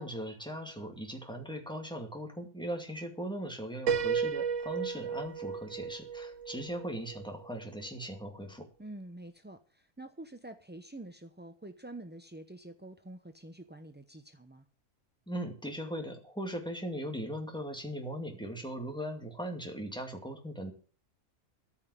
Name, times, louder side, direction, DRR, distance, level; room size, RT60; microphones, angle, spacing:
voice 1, 0.0-8.7 15.3-20.7, equal, 5° left, 3 dB, 2.2 m, -39 dB
Piano, 3.9-7.6, right 6 dB, 60° right, 1.3 m, -34 dB
voice 2, 8.8-14.7, right 1 dB, 15° right, 7 dB, 0.4 m, -47 dB
14.0 x 5.6 x 9.7 m, 0.41 s
omnidirectional pair, 1.5 m